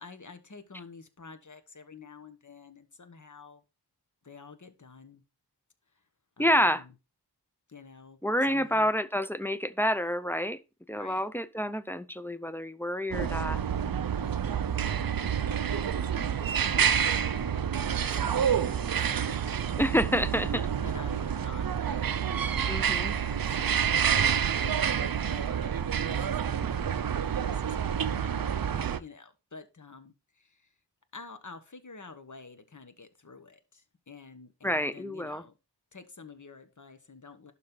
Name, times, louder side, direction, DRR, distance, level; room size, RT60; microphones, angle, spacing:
voice 1, 0.0-3.6 4.2-5.2 6.4-6.9 7.7-8.2 8.5-8.9 10.9-11.2 14.7-15.3 15.6-19.8 20.8-24.0 24.2-30.7 31.1-35.5 35.9-37.5, left 4 dB, 45° left, 1.3 m, -49 dB
voice 2, 6.4-6.8 8.2-10.6 10.9-13.6 19.8-20.7 22.7-23.1 34.6-35.4, equal, 5° left, 0.6 m, -28 dB
sound 1, 13.1-29.0, right 8 dB, 60° right, 0.6 m, -28 dB
11.5 x 4.2 x 3.9 m
wide cardioid pair, 80°, 40 cm